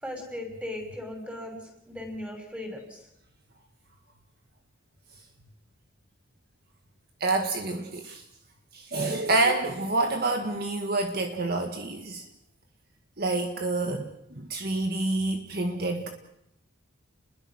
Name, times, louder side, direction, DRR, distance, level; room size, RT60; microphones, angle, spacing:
voice 1, 0.0-1.6 1.9-3.0, left 1 dB, 5° right, 3 dB, 5.9 m, -37 dB
voice 2, 7.2-8.3 8.7-12.3 13.2-16.1, right 2 dB, 50° right, 4 dB, 1.8 m, -28 dB
29.5 x 21.5 x 6.3 m, 0.80 s
head